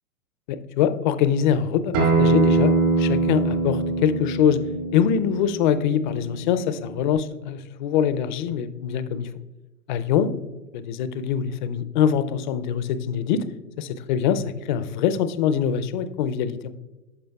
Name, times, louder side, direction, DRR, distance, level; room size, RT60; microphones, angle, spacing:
voice 1, 0.5-4.6 4.9-9.3 9.9-10.3 10.7-13.4 13.8-16.7, left 8 dB, 35° left, 12 dB, 0.4 m, -23 dB
Acoustic guitar, 1.9-7.1, right 3 dB, 60° right, 2.0 m, -23 dB
12.5 x 5.0 x 2.3 m, 1.1 s
hypercardioid pair, 115°, 44 cm